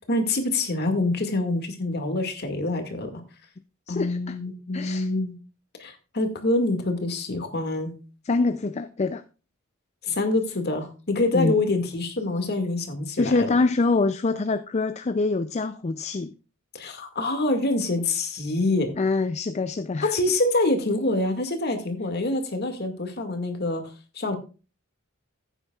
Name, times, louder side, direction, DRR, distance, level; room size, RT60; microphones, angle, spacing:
voice 1, 0.1-3.1 3.9-5.4 5.8-7.9 10.0-13.6 16.7-18.9 20.0-23.8 24.2-24.4, left 2 dB, 50° left, 2.1 m, -26 dB
voice 2, 3.9-4.4 4.7-5.1 8.3-9.2 11.3-11.6 13.1-16.3 19.0-20.1, left 3 dB, 30° left, 0.4 m, -25 dB
15.0 x 9.0 x 2.4 m
head